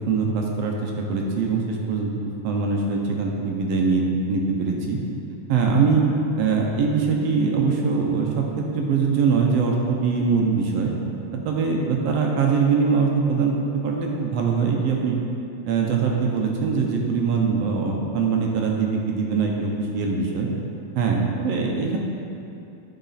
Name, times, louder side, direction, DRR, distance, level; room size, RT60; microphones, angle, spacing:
voice 1, 0.1-2.1 2.4-5.0 5.5-6.0 6.4-10.9 11.3-13.5 13.8-15.2 15.7-20.5 21.0-22.0, right 5 dB, 70° right, 0 dB, 1.6 m, -22 dB
10.5 x 5.0 x 4.1 m, 2.7 s
omnidirectional pair, 3.3 m